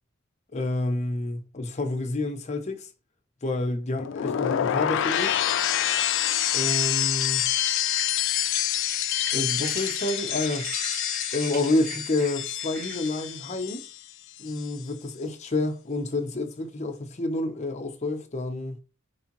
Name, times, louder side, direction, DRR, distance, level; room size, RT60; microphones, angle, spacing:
voice 1, 0.5-2.9 3.4-5.4 6.5-7.5 9.3-10.7 11.3-13.8 14.4-18.8, left 2 dB, 35° left, 0.7 m, -29 dB
sound 1, 4.0-14.1 14.4-14.8, left 11 dB, 65° left, 0.3 m, -27 dB
sound 2, 6.2-13.4, right 4 dB, 45° right, 0.7 m, -41 dB
4.4 x 3.3 x 2.9 m
head